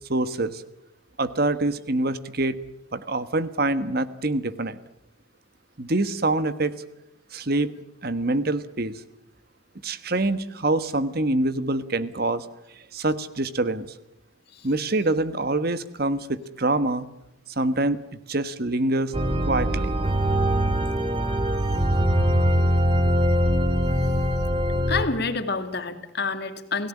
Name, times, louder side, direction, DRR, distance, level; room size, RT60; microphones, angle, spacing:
voice 1, 0.1-0.6 1.2-2.6 2.9-4.8 5.8-6.7 7.3-7.7 8.0-9.0 9.8-12.5 12.7-13.9 14.6-17.1 17.5-18.0 18.3-19.1 19.4-19.9, right 2 dB, 50° right, 13 dB, 1.4 m, -25 dB
sound 1, 19.1-25.0, equal, 25° right, 2.1 m, -22 dB
voice 2, 24.9-26.9, left 4 dB, 55° left, 8 dB, 2.5 m, -28 dB
29.5 x 17.5 x 9.8 m, 0.89 s
head